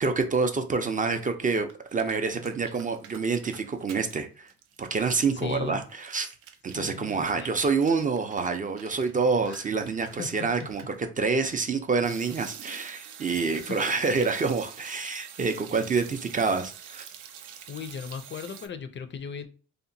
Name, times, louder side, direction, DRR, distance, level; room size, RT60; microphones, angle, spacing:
voice 1, 0.0-4.5 4.8-6.3 6.6-17.1, right 4 dB, 25° right, 0.4 m, -27 dB
sound 1, 1.2-1.3 1.5-4.2 4.5-11.0 12.0-18.7, right 8 dB, 85° right, 0.5 m, -47 dB
voice 2, 5.3-5.8 6.7-7.5 9.5-9.6 10.2-10.3 13.5-13.8 17.7-19.5, left 6 dB, 40° left, 0.4 m, -37 dB
2.8 x 2.1 x 2.6 m
cardioid pair, 90°, 30 cm